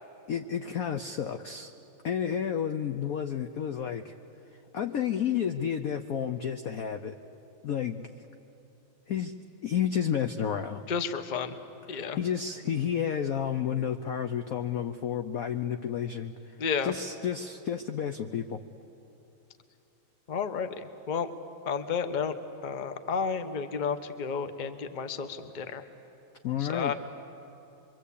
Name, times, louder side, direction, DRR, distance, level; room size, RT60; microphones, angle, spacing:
voice 1, 0.3-1.7 2.0-4.1 4.7-7.1 7.6-8.0 9.1-9.3 9.6-10.8 11.9-16.3 16.8-18.6 26.4-26.9, left 8 dB, 70° left, 8 dB, 0.8 m, -31 dB
voice 2, 10.9-11.6 11.9-12.2 16.6-16.9 20.3-21.3 21.6-22.4 22.6-25.8 26.6-26.9, left 6 dB, 40° left, 10 dB, 0.7 m, -31 dB
24.5 x 24.0 x 8.4 m, 3.0 s
omnidirectional pair, 2.3 m